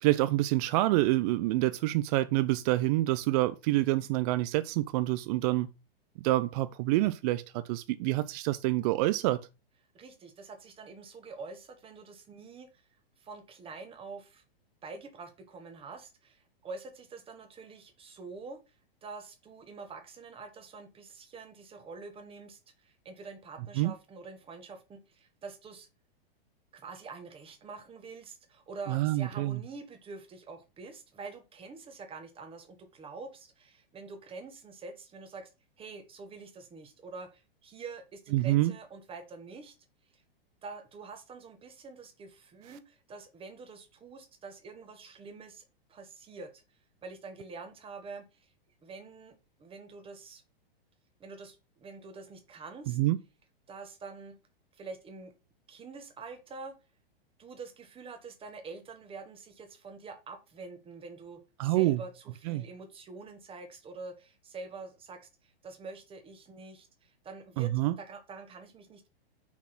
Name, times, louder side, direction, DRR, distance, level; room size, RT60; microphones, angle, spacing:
voice 1, 0.0-5.7 6.2-9.5 23.8-23.9 28.9-29.6 38.3-38.7 52.9-53.2 61.6-62.0 62.5-62.7 67.6-67.9, right 17 dB, 40° right, 0.5 m, -27 dB
voice 2, 9.9-12.8 13.2-14.4 14.8-18.6 19.0-25.9 26.7-35.5 35.8-39.7 40.1-40.2 40.6-46.6 47.0-48.5 48.8-50.4 51.2-53.0 53.7-54.4 54.7-55.3 55.7-56.8 57.4-67.7 68.0-69.1, right 4 dB, 20° right, 1.4 m, -46 dB
6.0 x 4.2 x 5.7 m
hypercardioid pair, 130°, 30 cm